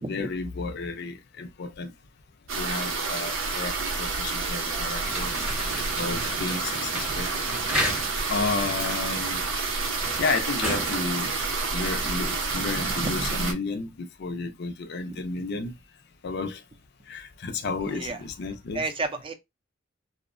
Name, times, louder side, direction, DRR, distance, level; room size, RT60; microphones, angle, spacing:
voice 1, 0.1-1.9 2.6-5.3 6.0-7.3 8.3-9.4 10.2-11.4 11.7-15.7 16.2-16.6 17.1-18.8, left 4 dB, 55° left, 0.4 m, -32 dB
sound 1, 2.5-13.5, right 4 dB, 80° right, 0.6 m, -29 dB
sound 2, 5.0-12.2, equal, 5° right, 0.8 m, -34 dB
voice 2, 17.9-18.2 18.7-19.3, right 3 dB, 25° right, 0.4 m, -32 dB
2.7 x 2.0 x 2.4 m
head